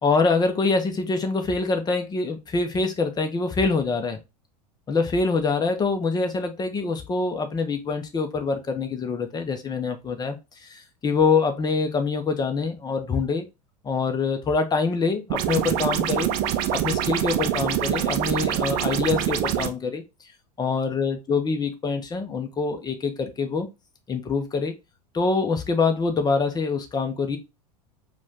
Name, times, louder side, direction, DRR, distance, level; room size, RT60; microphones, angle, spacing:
voice 1, 0.0-4.2 4.9-13.5 13.8-16.3 16.7-20.0 20.6-23.7 24.1-24.7 25.1-27.4, left 4 dB, 20° left, 0.9 m, -25 dB
sound 1, 15.3-19.7, right 10 dB, 45° right, 0.6 m, -25 dB
5.0 x 2.5 x 3.6 m
figure-of-eight pair, 85°, 20 cm